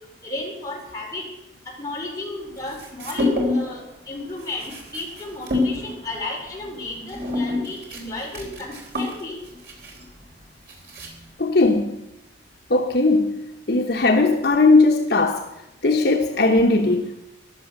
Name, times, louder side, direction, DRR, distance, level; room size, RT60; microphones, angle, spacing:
voice 1, 0.2-1.2 1.8-9.4, left 2 dB, 20° left, 4.8 m, -33 dB
sound 1, 2.6-3.8 4.1-11.4, left 2 dB, 60° right, 3.8 m, -28 dB
voice 2, 11.4-12.0 12.7-15.5 15.8-17.2, left 3 dB, 60° left, 1.0 m, -18 dB
14.0 x 11.5 x 6.5 m
head